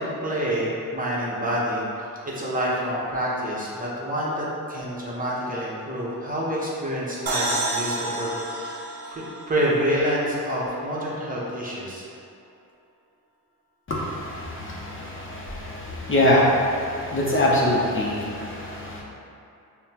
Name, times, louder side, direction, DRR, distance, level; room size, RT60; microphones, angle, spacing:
voice 1, 0.0-1.8 2.3-8.8 9.0-12.1, equal, 25° right, -6 dB, 0.8 m, -27 dB
sound 1, 7.3-10.8, right 2 dB, 80° right, 0.7 m, -30 dB
voice 2, 13.9-19.0, left 1 dB, 35° left, -5 dB, 0.7 m, -24 dB
5.6 x 2.2 x 2.8 m, 2.7 s
cardioid pair, 95°, 34 cm